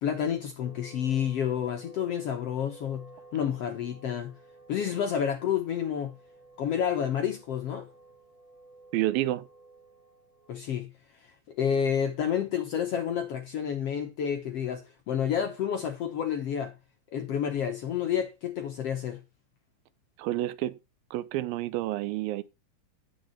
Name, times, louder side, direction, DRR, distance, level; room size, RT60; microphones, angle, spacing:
voice 1, 0.0-4.3 4.7-6.1 6.6-7.9 10.5-10.9 11.6-16.7 17.1-19.2, left 8 dB, 65° left, 1.5 m, -29 dB
sound 1, 0.6-10.5, right 3 dB, ahead, 5.5 m, -54 dB
voice 2, 8.9-9.5 20.2-20.8 21.1-22.4, right 15 dB, 85° right, 2.5 m, -29 dB
9.5 x 6.7 x 4.5 m
omnidirectional pair, 4.1 m